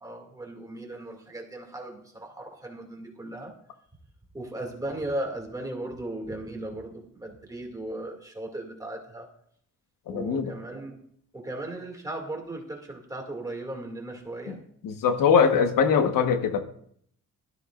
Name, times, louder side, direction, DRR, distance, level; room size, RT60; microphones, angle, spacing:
voice 1, 0.0-3.5 4.3-9.3 10.1-11.0 11.3-14.6, right 1 dB, 10° right, 1 dB, 2.2 m, -37 dB
voice 2, 10.1-10.5 14.8-16.6, left 6 dB, 85° left, 6 dB, 1.3 m, -22 dB
16.5 x 13.5 x 2.5 m, 0.64 s
wide cardioid pair, 175°, 32 cm